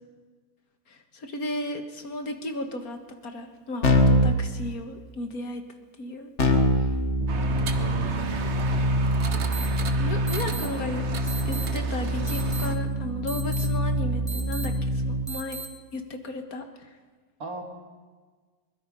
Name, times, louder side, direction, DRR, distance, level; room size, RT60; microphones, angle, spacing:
voice 1, 0.9-5.6 6.0-6.3 6.8-6.9 10.0-11.0 11.5-15.6 15.9-17.0, left 1 dB, 85° left, 6 dB, 2.2 m, -35 dB
Keyboard (musical), 3.8-4.4 6.4-15.3, equal, 55° left, 2.0 m, -25 dB
voice 2, 7.2-9.0 17.4-17.6, right 2 dB, 85° right, 2 dB, 3.1 m, -39 dB
sound 1, 7.3-12.8, right 5 dB, 55° right, 1.4 m, -36 dB
sound 2, 9.5-9.7 10.3-10.7 11.3-11.7 12.3-12.7 13.3-13.7 14.3-14.7 15.3-15.7, right 3 dB, 5° left, 2.0 m, -36 dB
22.5 x 21.5 x 5.5 m, 1.4 s
omnidirectional pair, 1.5 m